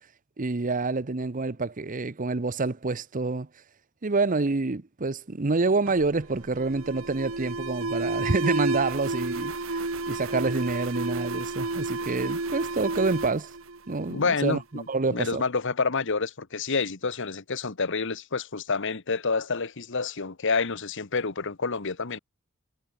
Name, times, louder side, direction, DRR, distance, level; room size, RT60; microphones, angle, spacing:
voice 1, 0.4-3.5 4.0-9.8 10.1-13.5 13.9-15.4, right 3 dB, 35° right, 0.8 m, -27 dB
Alarm, 5.9-14.5, right 3 dB, 65° right, 1.8 m, -31 dB
voice 2, 14.1-14.8 15.1-22.2, left 4 dB, 60° left, 1.2 m, -28 dB
head